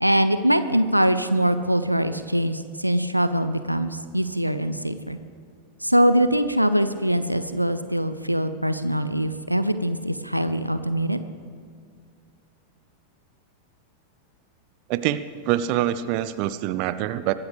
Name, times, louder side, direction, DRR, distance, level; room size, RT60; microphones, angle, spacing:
voice 1, 0.0-5.2 5.8-11.2, equal, 90° right, 12 dB, 0.6 m, -23 dB
voice 2, 14.9-17.3, right 12 dB, 45° right, 14 dB, 0.5 m, -25 dB
23.0 x 12.5 x 3.5 m, 2.1 s
figure-of-eight pair, 90°, 0 cm